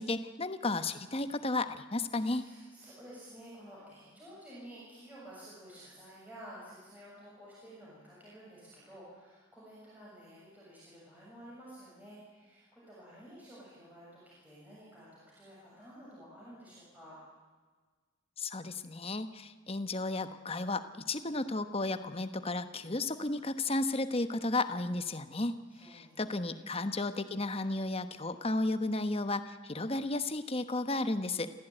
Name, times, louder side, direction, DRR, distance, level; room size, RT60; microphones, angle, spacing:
voice 1, 0.0-2.4 18.4-20.8 21.1-25.5 25.8-31.5, left 2 dB, 30° left, 10 dB, 1.1 m, -33 dB
voice 2, 2.1-17.2 25.7-27.2, equal, 10° right, -7 dB, 7.1 m, -52 dB
26.5 x 16.5 x 9.2 m, 1.4 s
head